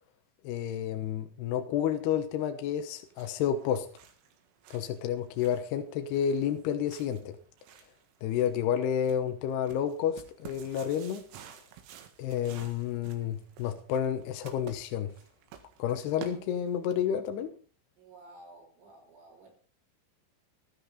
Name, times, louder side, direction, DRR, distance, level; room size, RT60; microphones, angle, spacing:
voice 1, 0.4-3.9 4.7-7.4 8.2-11.3 12.2-15.1 15.8-17.5, left 9 dB, 75° left, 7 dB, 2.5 m, -30 dB
sound 1, 2.8-17.0, right 9 dB, 90° right, 4.4 m, -53 dB
voice 2, 18.0-19.5, right 2 dB, 75° right, -1 dB, 8.5 m, -53 dB
14.0 x 13.5 x 4.1 m, 0.39 s
omnidirectional pair, 6.0 m